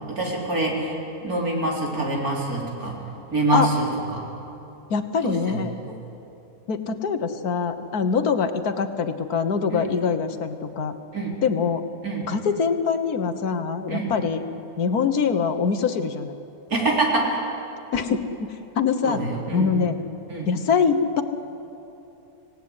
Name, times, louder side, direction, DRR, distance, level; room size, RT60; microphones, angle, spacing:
voice 1, 0.1-3.0 3.3-3.9 4.1-4.2 5.5-5.6 11.1-11.3 12.0-12.2 13.9-14.1 16.7-17.4 19.0-19.7 20.3-20.5, right 2 dB, 70° right, -2 dB, 4.4 m, -25 dB
voice 2, 4.9-5.7 6.7-10.9 11.4-11.8 12.3-14.4 14.8-16.3 17.9-19.2 19.5-20.0 20.5-21.2, left 6 dB, 75° left, 9 dB, 1.7 m, -24 dB
26.0 x 17.5 x 9.7 m, 2.9 s
omnidirectional pair, 1.6 m